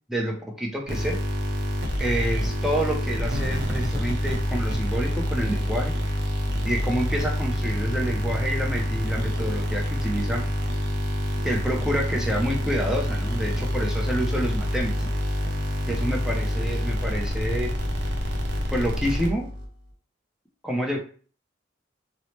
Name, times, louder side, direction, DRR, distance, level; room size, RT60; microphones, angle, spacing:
voice 1, 0.1-1.2 2.0-5.9 6.6-10.5 11.4-14.9 15.9-17.7 18.7-19.5 20.6-21.0, equal, 5° right, -1 dB, 0.5 m, -28 dB
sound 1, 0.9-19.7, equal, 60° right, 0.6 m, -27 dB
2.8 x 2.0 x 3.0 m, 0.41 s
head